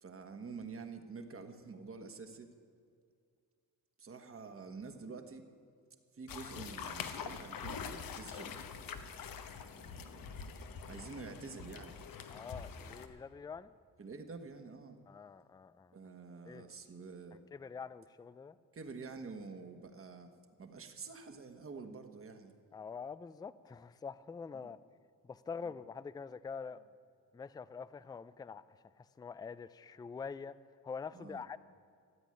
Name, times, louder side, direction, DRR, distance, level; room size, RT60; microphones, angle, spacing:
voice 1, 0.0-2.6 4.0-5.5 6.1-8.6 9.7-10.4 10.8-12.0 14.0-15.0 15.9-17.4 18.7-20.3 20.6-22.6 24.5-24.7 31.1-31.4, right 4 dB, 40° right, 6 dB, 1.4 m, -48 dB
sound 1, 6.3-13.1, left 6 dB, 75° left, 1.1 m, -45 dB
voice 2, 12.3-13.7 15.1-16.0 16.5-16.6 17.5-18.6 22.7-24.8 25.2-26.8 27.3-30.6 30.8-31.6, left 5 dB, 10° left, 16 dB, 0.3 m, -45 dB
14.5 x 8.2 x 9.8 m, 2.3 s
cardioid pair, 110°, 34 cm